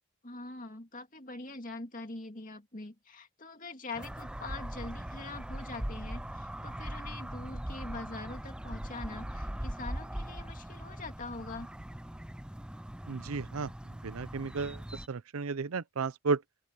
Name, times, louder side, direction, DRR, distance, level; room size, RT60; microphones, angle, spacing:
voice 1, 0.2-11.7, left 3 dB, 35° left, 2.5 m, -43 dB
sound 1, 3.9-15.1, right 1 dB, 5° right, 0.4 m, -40 dB
voice 2, 13.1-16.4, right 4 dB, 75° right, 0.6 m, -34 dB
open air
head